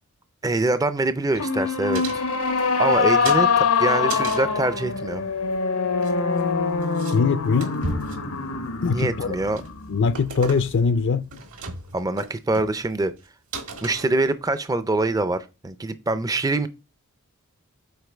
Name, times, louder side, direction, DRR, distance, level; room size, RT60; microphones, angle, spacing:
voice 1, 0.4-2.2 2.8-5.2 8.8-9.6 11.9-13.1 13.8-16.7, right 2 dB, 15° right, 0.4 m, -24 dB
sound 1, 1.4-10.7, left 5 dB, 85° left, 1.0 m, -24 dB
sound 2, 1.9-3.0 3.2-4.5 5.8-6.5 6.8-7.2 7.4-8.2 8.7-9.0 9.4-9.7 10.1-10.9 11.2-11.9 12.2-12.3 12.8-12.9 13.2-13.3 13.5-14.5, right 5 dB, 75° right, 1.5 m, -37 dB
voice 2, 7.1-7.8 8.8-9.4 9.9-11.2, left 5 dB, 55° left, 0.4 m, -21 dB
sound 3, 7.7-8.4 10.2-10.3 10.7-10.8 11.6-15.2, equal, 90° right, 3.1 m, -36 dB
8.0 x 4.4 x 3.4 m
head